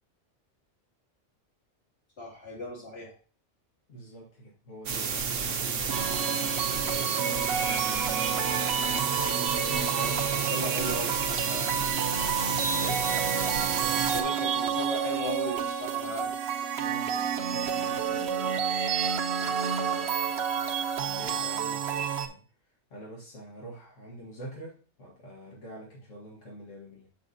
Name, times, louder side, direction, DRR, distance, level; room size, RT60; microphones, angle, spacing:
voice 1, 2.2-3.1 9.9-11.7 14.1-16.3, left 2 dB, 55° left, -3 dB, 2.7 m, -37 dB
voice 2, 3.9-8.6 12.8-13.1 16.8-18.8 19.4-22.4 22.9-27.1, equal, 85° left, -3 dB, 1.8 m, -47 dB
sound 1, 4.9-14.2, right 6 dB, 80° right, 1.2 m, -31 dB
sound 2, 5.9-22.3, right 7 dB, 65° right, 1.0 m, -30 dB
6.9 x 6.9 x 2.7 m, 0.38 s
omnidirectional pair, 1.2 m